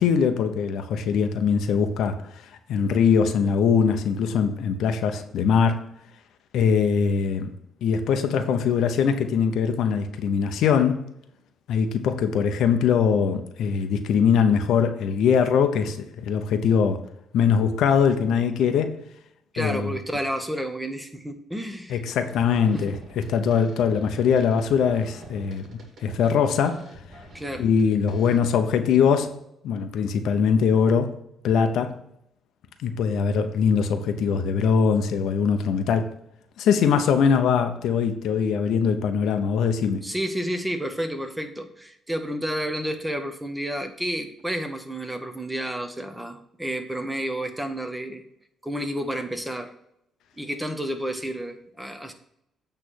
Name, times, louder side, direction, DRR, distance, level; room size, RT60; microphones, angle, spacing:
voice 1, 0.0-2.2 2.7-5.8 6.5-7.5 7.8-11.0 11.7-17.0 17.3-19.0 19.6-19.9 21.9-25.7 26.0-26.8 27.6-29.3 29.6-31.1 31.4-31.9 32.8-36.1 36.6-40.0, left 6 dB, 80° left, 0.7 m, -22 dB
voice 2, 19.5-22.0 22.7-22.8 27.3-27.6 40.0-48.2 48.6-49.7 50.4-52.1, equal, 10° right, 1.0 m, -30 dB
sound 1, 21.5-21.8 22.1-28.4, right 1 dB, 55° right, 2.2 m, -46 dB
8.4 x 3.3 x 6.2 m
cardioid pair, 90°, 0 cm